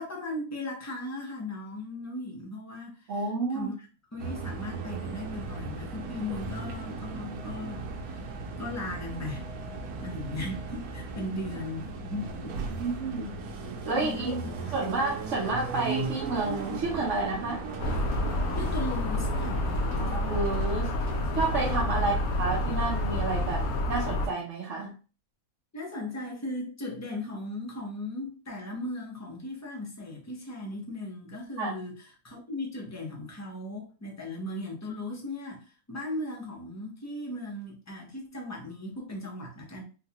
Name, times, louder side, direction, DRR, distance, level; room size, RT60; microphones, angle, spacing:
voice 1, 0.0-3.9 4.1-9.5 10.0-12.5 13.9-14.9 18.5-20.2 22.0-22.2 25.7-39.8, left 1 dB, 20° left, 0.4 m, -37 dB
voice 2, 3.1-3.7 12.8-13.3 13.8-14.3 14.7-17.6 20.0-24.9 31.6-31.8, right 3 dB, 60° right, 1.0 m, -30 dB
sound 1, 4.2-23.8, right 4 dB, 90° right, 1.1 m, -37 dB
sound 2, 17.8-24.3, left 1 dB, 75° left, 1.0 m, -29 dB
3.9 x 2.2 x 2.8 m
omnidirectional pair, 1.6 m